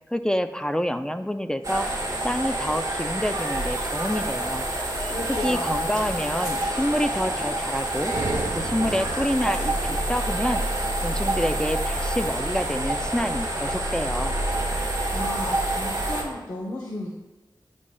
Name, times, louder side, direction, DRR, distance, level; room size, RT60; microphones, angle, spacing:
voice 1, 0.1-1.9 2.2-4.7 5.4-8.1 8.5-10.6 11.0-14.3, equal, 10° left, 9 dB, 0.3 m, -27 dB
sound 1, 1.6-16.2, right 1 dB, 40° right, 1.5 m, -27 dB
voice 2, 5.1-6.0 15.1-17.1, left 1 dB, 50° left, -2 dB, 0.8 m, -33 dB
sound 2, 8.1-10.2, right 3 dB, 75° right, 0.5 m, -34 dB
9.6 x 5.2 x 2.2 m, 1.1 s
wide cardioid pair, 85°, 9 cm